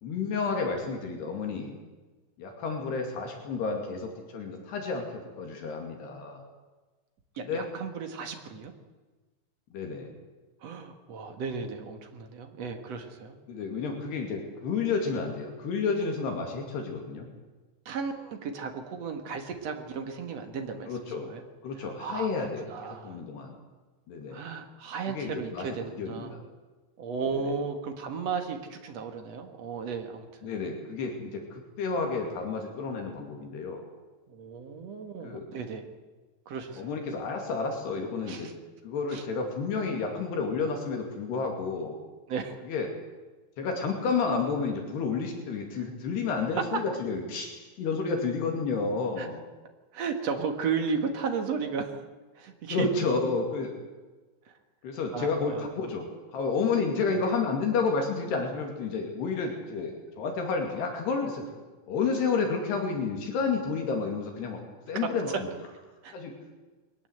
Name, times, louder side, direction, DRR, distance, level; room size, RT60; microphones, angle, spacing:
voice 1, 0.0-1.7 2.4-6.4 7.4-7.7 9.7-10.1 13.5-17.3 20.9-21.3 21.6-23.5 24.1-24.4 25.1-26.4 27.3-27.6 30.4-33.8 35.2-35.4 36.8-38.5 38.8-42.0 42.6-42.9 43.6-49.4 52.7-53.7 54.8-56.1 56.3-61.4 61.9-64.6 64.9-65.3 66.1-66.3, left 4 dB, 70° left, 2 dB, 4.5 m, -31 dB
voice 2, 7.4-8.7 10.6-13.4 17.9-21.4 22.0-23.2 24.3-26.4 27.0-30.5 34.3-35.9 36.5-36.9 38.2-38.5 39.1-39.2 42.3-42.6 49.2-49.3 49.9-52.0 52.4-52.9 54.9-55.7 66.0-66.1, right 5 dB, 50° right, 5 dB, 2.3 m, -35 dB
21.5 x 19.0 x 8.0 m, 1.3 s
omnidirectional pair, 5.1 m